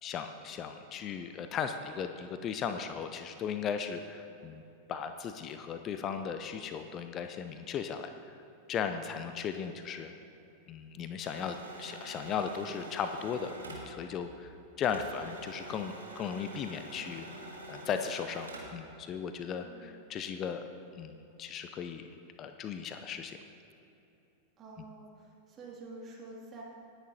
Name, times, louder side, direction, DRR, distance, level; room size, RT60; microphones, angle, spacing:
voice 1, 0.0-4.6 4.9-8.4 8.7-10.1 10.7-14.5 14.8-17.3 17.7-20.7 21.0-22.1 22.4-23.4, left 7 dB, 30° left, 8 dB, 0.5 m, -37 dB
sound 1, 11.2-14.5 14.8-18.8, right 2 dB, 75° right, 1.9 m, -46 dB
voice 2, 19.6-19.9 24.6-26.6, right 3 dB, 25° right, -3 dB, 2.6 m, -48 dB
18.5 x 10.0 x 2.8 m, 2.9 s
figure-of-eight pair, 90°, 0 cm